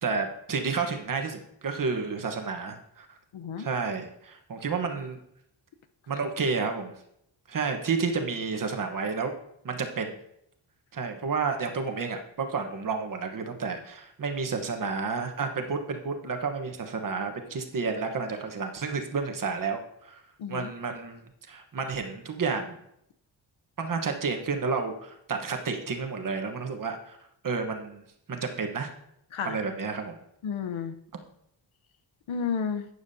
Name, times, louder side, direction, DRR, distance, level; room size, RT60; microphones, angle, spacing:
voice 1, 0.0-3.1 3.6-5.2 6.1-7.0 7.5-9.3 9.6-10.2 10.9-20.2 20.5-22.8 23.8-27.2 27.4-28.0 28.3-28.9 29.4-30.2, right 4 dB, 45° right, 4 dB, 1.2 m, -31 dB
voice 2, 3.3-3.7 20.4-20.7 29.3-29.6 30.4-30.9 32.3-32.9, left 6 dB, 90° left, 8 dB, 0.9 m, -31 dB
12.0 x 9.4 x 2.7 m, 0.76 s
wide cardioid pair, 165°, 46 cm